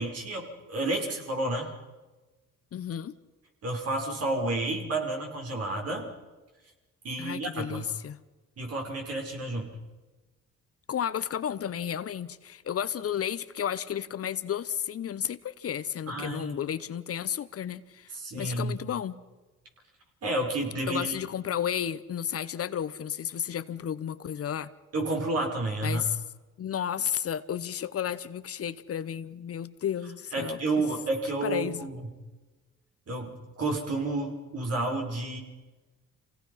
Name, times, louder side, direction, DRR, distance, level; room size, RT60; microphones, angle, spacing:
voice 1, 0.0-1.7 3.6-6.1 7.0-7.9 8.6-9.8 16.1-16.6 18.1-18.8 20.2-21.2 24.9-26.0 30.3-32.1 33.1-35.4, right 2 dB, 55° right, 1 dB, 5.7 m, -31 dB
voice 2, 2.7-3.1 7.2-8.2 10.9-19.1 20.9-24.7 25.8-26.2 26.6-30.6 31.4-31.9, left 9 dB, 50° left, 14 dB, 0.9 m, -32 dB
27.0 x 17.5 x 5.7 m, 1.2 s
cardioid pair, 90°, 30 cm